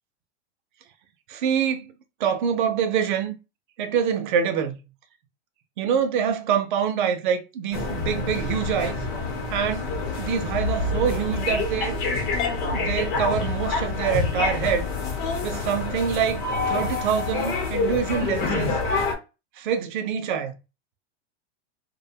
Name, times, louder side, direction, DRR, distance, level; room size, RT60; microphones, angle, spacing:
voice 1, 1.3-1.9 2.2-3.3 3.8-4.8 5.8-9.0 9.5-9.9 10.2-12.0 12.6-14.9 15.4-16.4 16.7-18.8 19.6-20.6, right 7 dB, 50° right, 0.5 m, -25 dB
sound 1, 7.7-19.1, left 3 dB, 45° left, 0.9 m, -27 dB
2.5 x 2.2 x 2.6 m
supercardioid pair, 170°, 34 cm